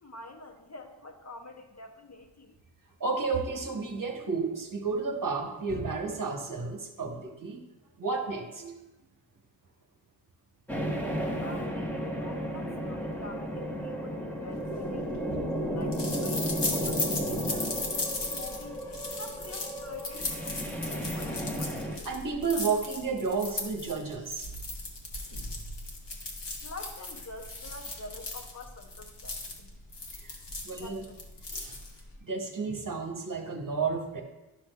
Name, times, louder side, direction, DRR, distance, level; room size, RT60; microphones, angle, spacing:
voice 1, 0.0-2.6 11.4-15.1 15.6-17.8 18.2-21.7 26.6-29.7 30.8-31.3, left 2 dB, 35° left, 2 dB, 0.6 m, -47 dB
voice 2, 3.0-7.6 8.0-8.7 12.6-12.7 15.3-15.4 22.0-24.5 30.2-30.4 30.6-31.0 31.5-31.8 32.2-34.2, right 4 dB, 40° right, 3 dB, 1.0 m, -32 dB
sound 1, 10.7-22.0, equal, 5° left, 0.9 m, -33 dB
sound 2, 14.7-32.2, left 2 dB, 60° left, 1.3 m, -37 dB
11.5 x 6.2 x 2.3 m, 1.0 s
wide cardioid pair, 135°, 48 cm